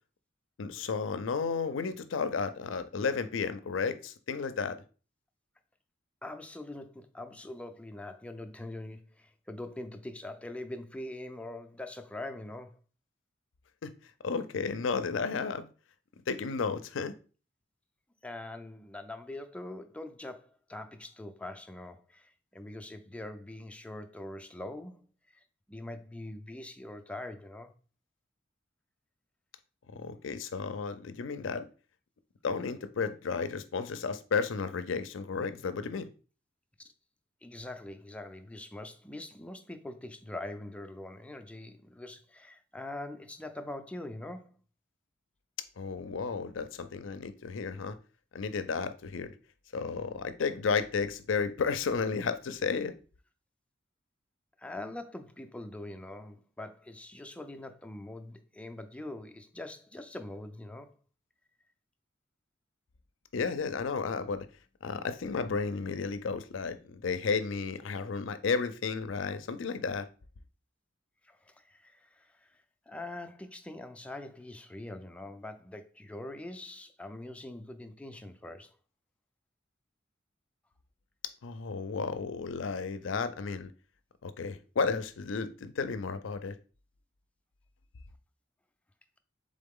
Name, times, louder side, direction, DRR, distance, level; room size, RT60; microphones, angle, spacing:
voice 1, 0.6-4.8 13.8-13.9 14.2-15.7 16.3-17.1 29.9-31.6 32.4-36.1 45.8-48.0 48.3-49.3 49.7-52.9 63.3-64.5 64.8-70.1 81.4-83.7 84.2-86.5, left 5 dB, 75° left, 0.5 m, -33 dB
voice 2, 6.2-12.8 18.2-25.1 25.3-27.7 36.8-36.9 37.4-44.5 54.6-60.9 71.2-72.6 72.9-78.8, left 1 dB, 5° left, 0.4 m, -43 dB
3.9 x 3.7 x 3.6 m
head